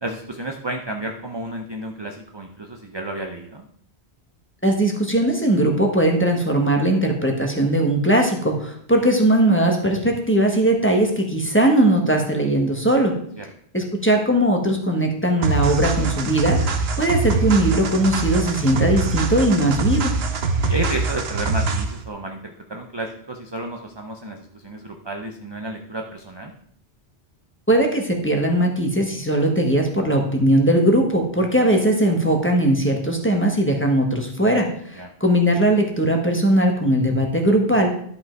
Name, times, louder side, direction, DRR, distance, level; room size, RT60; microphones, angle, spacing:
voice 1, 0.0-3.7 13.4-13.5 20.7-26.5 34.9-35.1, right 1 dB, 25° right, 3 dB, 0.7 m, -31 dB
voice 2, 4.6-13.1 13.7-20.1 27.7-37.9, right 1 dB, 10° left, 2 dB, 1.4 m, -19 dB
sound 1, 15.4-22.0, right 3 dB, 65° right, 1.1 m, -23 dB
11.0 x 5.3 x 4.6 m, 0.63 s
omnidirectional pair, 1.1 m